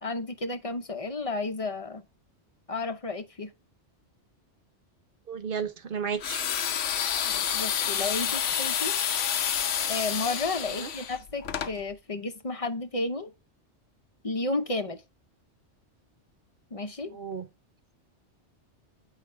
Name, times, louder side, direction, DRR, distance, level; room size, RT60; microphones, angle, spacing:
voice 1, 0.0-2.1 2.7-3.5 7.2-8.9 9.9-13.3 14.2-15.0 16.7-17.2, left 3 dB, 35° left, 0.7 m, -32 dB
voice 2, 5.3-6.4 10.7-10.9 17.1-17.5, right 6 dB, 55° right, 0.9 m, -33 dB
sound 1, 6.2-11.7, left 9 dB, 90° left, 1.1 m, -29 dB
8.6 x 4.9 x 3.3 m
omnidirectional pair, 1.2 m